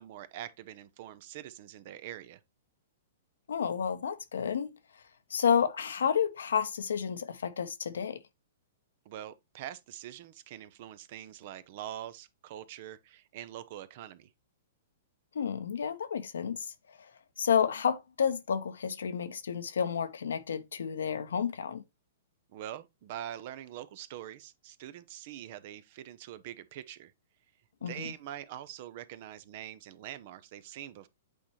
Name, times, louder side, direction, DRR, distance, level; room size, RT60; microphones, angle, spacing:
voice 1, 0.0-2.4 9.0-14.3 22.5-27.1 27.8-31.1, right 11 dB, 50° right, 0.7 m, -44 dB
voice 2, 3.5-4.8 5.3-8.2 15.3-17.1 17.4-21.8 27.8-28.1, left 7 dB, 80° left, 0.9 m, -30 dB
8.5 x 4.3 x 3.1 m
hypercardioid pair, 125°, 0 cm